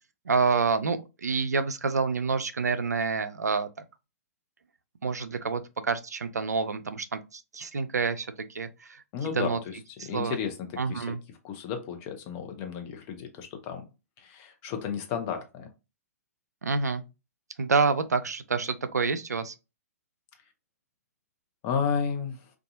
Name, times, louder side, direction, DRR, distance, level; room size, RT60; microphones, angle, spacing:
voice 1, 0.3-3.7 5.0-9.0 9.4-9.6 10.1-10.4 10.8-11.2 16.6-17.0 17.6-19.5, right 4 dB, 80° right, 0.4 m, -28 dB
voice 2, 9.1-11.2 11.4-13.8 14.2-15.7 21.6-22.5, left 7 dB, 30° left, 0.6 m, -33 dB
2.7 x 2.3 x 2.6 m
figure-of-eight pair, 115°, 9 cm